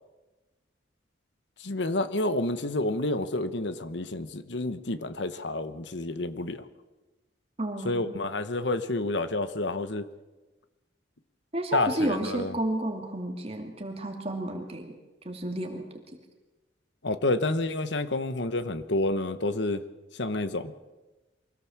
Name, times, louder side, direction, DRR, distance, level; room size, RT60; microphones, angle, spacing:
voice 1, 1.6-6.6 7.8-10.1 11.7-12.5 17.0-19.8 20.1-20.7, left 2 dB, 75° left, 12 dB, 1.2 m, -29 dB
voice 2, 7.6-8.2 11.5-14.9 15.2-15.8, right 1 dB, 35° right, 3 dB, 2.6 m, -31 dB
24.0 x 17.0 x 7.3 m, 1.2 s
head